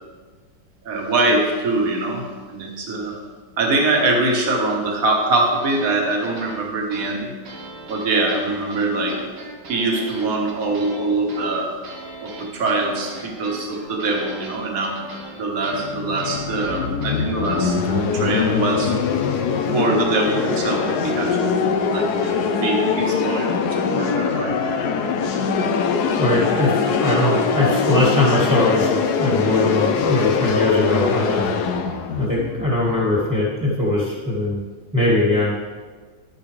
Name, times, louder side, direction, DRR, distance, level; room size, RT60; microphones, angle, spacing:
voice 1, 0.8-2.2 2.5-3.2 3.6-7.4 7.9-9.2 9.7-11.7 12.2-15.0 15.4-18.9 19.7-21.6 21.9-24.5, right 2 dB, 45° right, 0 dB, 1.8 m, -23 dB
sound 1, 5.6-17.7, right 1 dB, 85° right, 2.3 m, -38 dB
sound 2, 15.7-33.5, left 5 dB, 65° left, 1.1 m, -22 dB
voice 2, 26.1-31.4 32.2-34.6 34.9-35.5, left 2 dB, 5° right, -5 dB, 1.7 m, -20 dB
11.0 x 9.6 x 3.3 m, 1.5 s
omnidirectional pair, 2.2 m